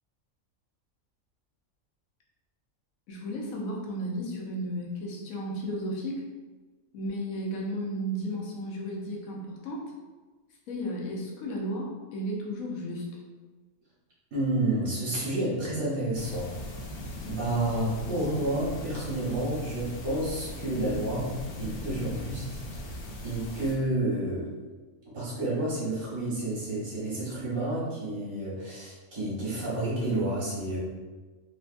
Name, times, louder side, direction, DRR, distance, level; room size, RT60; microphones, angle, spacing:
voice 1, 3.1-6.2 6.9-9.8 10.7-13.1, equal, 85° left, -2 dB, 1.1 m, -34 dB
voice 2, 14.3-16.5 17.3-21.3 21.6-22.6 23.2-24.5 25.1-30.8, right 1 dB, 85° right, -8 dB, 1.8 m, -30 dB
sound 1, 16.1-23.8, left 1 dB, 65° left, 0.8 m, -38 dB
3.9 x 2.2 x 2.5 m, 1.3 s
omnidirectional pair, 1.4 m